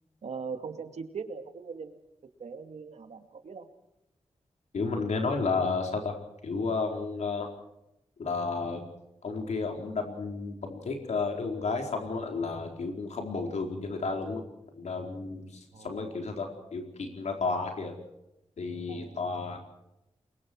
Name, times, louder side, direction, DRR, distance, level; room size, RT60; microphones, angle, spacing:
voice 1, 0.2-2.0 2.4-3.7 15.7-16.2 18.9-19.2, right 5 dB, 75° right, 7 dB, 2.4 m, -40 dB
voice 2, 4.7-6.1 6.4-7.5 8.2-8.8 9.2-14.4 14.7-17.9 18.6-19.6, left 4 dB, 90° left, 3 dB, 4.5 m, -32 dB
29.5 x 23.0 x 4.8 m, 0.87 s
wide cardioid pair, 180°, 11 cm